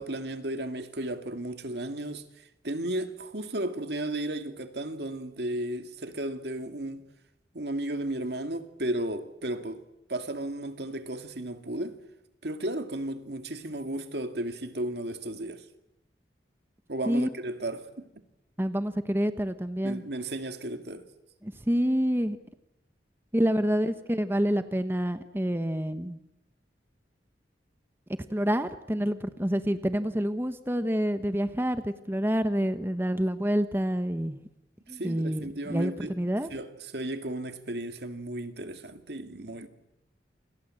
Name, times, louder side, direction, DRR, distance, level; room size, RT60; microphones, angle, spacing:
voice 1, 0.0-2.2 2.6-7.0 7.5-9.8 10.1-12.0 12.4-15.6 16.9-18.0 19.8-21.1 34.9-36.1 36.5-39.7, right 1 dB, 70° right, 2.4 m, -34 dB
voice 2, 18.6-20.0 21.4-22.4 23.3-26.2 28.3-34.4 34.9-36.5, equal, 15° right, 1.1 m, -27 dB
29.0 x 26.5 x 7.8 m
head